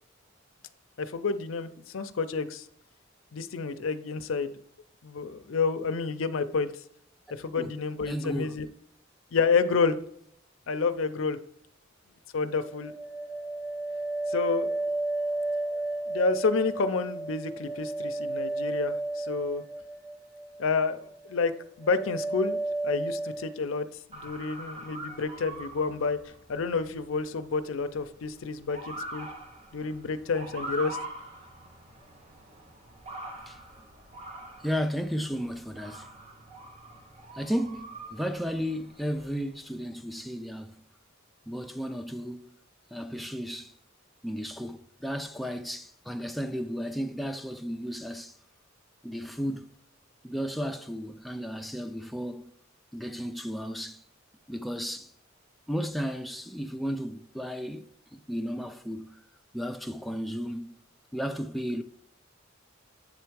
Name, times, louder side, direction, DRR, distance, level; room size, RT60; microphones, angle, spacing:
voice 1, 1.0-2.7 3.3-4.5 5.0-6.7 7.3-8.7 9.3-9.9 10.7-11.4 12.3-12.9 14.3-14.7 15.7-19.6 20.6-21.5 21.8-23.9 24.1-26.2 26.5-29.3 29.7-31.0, left 4 dB, 75° left, 0.5 m, -29 dB
voice 2, 8.1-8.6 33.5-33.6 34.6-36.1 37.3-40.8 41.5-42.5 42.9-43.7 44.2-48.4 49.0-49.7 50.2-52.5 52.9-54.0 54.5-55.1 55.7-59.2 59.5-60.7 61.1-61.8, equal, ahead, 0.4 m, -34 dB
sound 1, 12.5-20.6 20.9-21.5 21.8-23.6, right 2 dB, 85° right, 1.9 m, -33 dB
Motor vehicle (road) / Siren, 24.1-39.7, right 1 dB, 30° right, 1.0 m, -44 dB
8.2 x 3.4 x 4.7 m
head